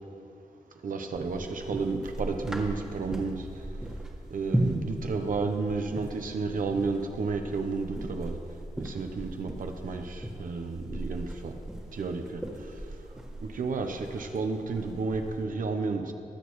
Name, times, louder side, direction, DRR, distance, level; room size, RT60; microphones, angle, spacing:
voice 1, 0.8-3.5 4.3-8.4 8.8-11.5 11.9-12.4 13.4-16.1, right 4 dB, 75° right, 5 dB, 0.9 m, -32 dB
sound 1, 1.1-15.4, right 1 dB, 5° right, 1.5 m, -37 dB
21.5 x 8.3 x 3.2 m, 2.7 s
cardioid pair, 70°, 14 cm